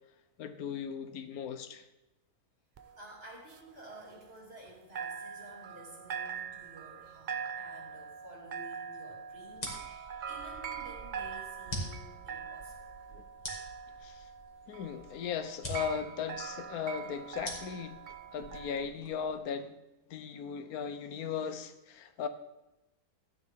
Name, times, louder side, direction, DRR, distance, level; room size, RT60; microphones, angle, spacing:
voice 1, 0.4-1.8 13.1-13.2 14.0-14.2 14.7-18.0 18.3-19.8 20.1-22.3, left 7 dB, 75° left, 10 dB, 1.2 m, -37 dB
voice 2, 2.8-12.9, right 1 dB, 40° right, -3 dB, 3.0 m, -52 dB
sound 1, 2.8-4.7 5.0-18.9, right 7 dB, 70° right, 0.4 m, -43 dB
sound 2, 9.5-19.4, equal, 25° left, 2.1 m, -45 dB
13.0 x 9.5 x 3.6 m, 0.97 s
omnidirectional pair, 1.6 m